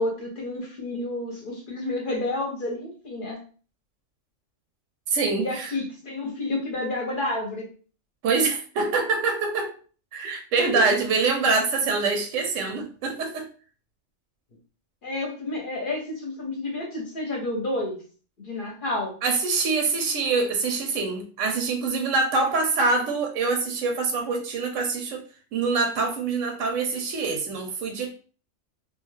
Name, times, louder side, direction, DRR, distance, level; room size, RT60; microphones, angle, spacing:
voice 1, 0.0-3.4 5.4-7.6 10.7-11.0 15.0-18.0 18.4-19.1, left 2 dB, 50° left, 0 dB, 0.7 m, -30 dB
voice 2, 5.1-5.7 8.2-9.7 10.1-13.5 19.2-25.2 25.5-28.1, right 4 dB, 90° right, 5 dB, 1.0 m, -25 dB
2.4 x 2.3 x 3.1 m, 0.40 s
omnidirectional pair, 1.3 m